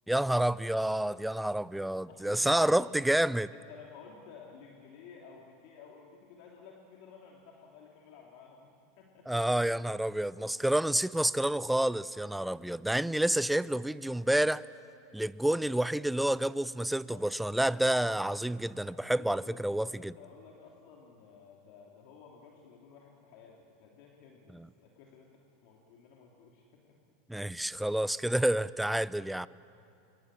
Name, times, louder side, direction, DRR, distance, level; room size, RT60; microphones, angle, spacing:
voice 1, 0.1-3.5 9.3-14.6 15.1-20.1 24.5-24.7 27.3-29.5, right 1 dB, 5° right, 18 dB, 0.5 m, -29 dB
voice 2, 2.1-2.9 3.5-9.3 10.4-10.8 16.8-17.3 17.6-17.8 18.9-26.9 27.4-27.5, left 6 dB, 60° left, -1 dB, 3.1 m, -54 dB
27.0 x 23.0 x 7.7 m, 2.8 s
hypercardioid pair, 100°, 0 cm